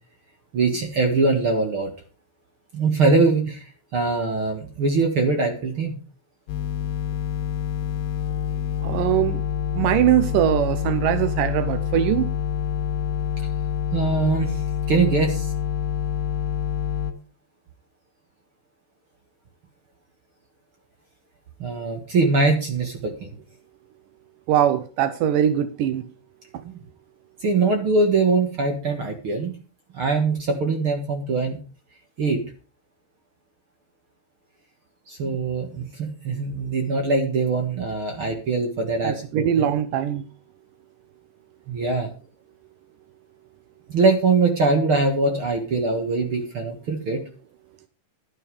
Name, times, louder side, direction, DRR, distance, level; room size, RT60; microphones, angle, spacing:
voice 1, 0.5-1.9 2.7-3.6 3.9-6.0 13.9-14.6 14.9-15.5 21.6-23.3 26.6-26.7 27.4-29.5 29.9-31.6 32.2-32.4 35.1-39.7 41.7-42.1 43.9-47.2, right 3 dB, 50° right, 4 dB, 1.7 m, -22 dB
sound 1, 6.5-17.1, left 9 dB, 90° left, 3.7 m, -27 dB
voice 2, 8.8-9.4 9.7-12.3 24.5-26.1 39.0-40.2, right 11 dB, 85° right, 12 dB, 1.9 m, -21 dB
11.5 x 11.0 x 4.9 m, 0.35 s
omnidirectional pair, 4.9 m